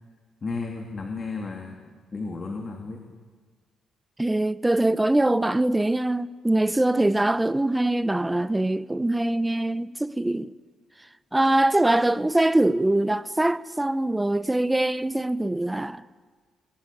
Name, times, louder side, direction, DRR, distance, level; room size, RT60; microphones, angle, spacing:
voice 1, 0.4-1.8 2.1-3.0, left 3 dB, 35° left, 3.1 m, -33 dB
voice 2, 4.2-10.5 11.3-16.0, right 1 dB, 10° right, 0.8 m, -23 dB
27.0 x 22.5 x 8.7 m
cardioid pair, 90°, 0 cm